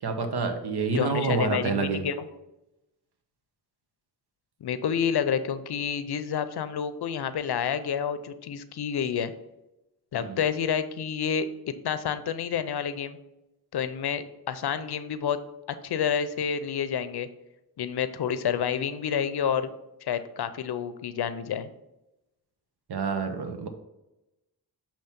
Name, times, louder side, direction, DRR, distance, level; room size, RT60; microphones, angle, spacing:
voice 1, 0.0-2.1 10.2-10.4 22.9-23.7, right 4 dB, 85° right, 7 dB, 0.9 m, -28 dB
voice 2, 0.9-2.3 4.6-9.3 10.1-11.5 11.8-13.2 13.7-15.4 15.8-17.3 17.8-19.7 20.0-21.7, left 8 dB, 80° left, 12 dB, 0.6 m, -29 dB
6.9 x 3.0 x 5.7 m, 0.95 s
wide cardioid pair, 65°, 38 cm